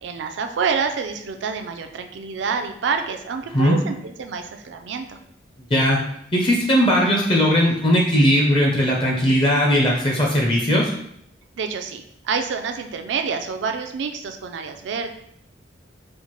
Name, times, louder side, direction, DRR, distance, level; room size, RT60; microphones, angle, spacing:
voice 1, 0.0-5.2 11.6-15.1, right 5 dB, 70° right, 6 dB, 0.4 m, -27 dB
voice 2, 6.3-10.9, equal, 25° left, -1 dB, 0.5 m, -18 dB
4.3 x 2.1 x 3.0 m, 0.71 s
head